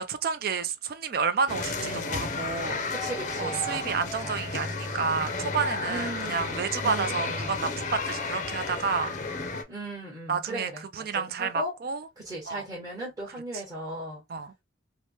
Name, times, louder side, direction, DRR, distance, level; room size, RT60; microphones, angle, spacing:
voice 1, 0.0-2.8 3.4-9.1 10.3-12.1 12.5-12.6 14.3-14.5, right 5 dB, 50° right, 0.4 m, -30 dB
sound 1, 1.5-9.6, left 3 dB, 40° left, 0.5 m, -32 dB
voice 2, 1.7-2.3 2.9-4.4 5.8-7.7 9.7-10.8 11.1-11.7 12.2-14.2, right 1 dB, 20° right, 1.2 m, -38 dB
2.9 x 2.1 x 3.0 m
head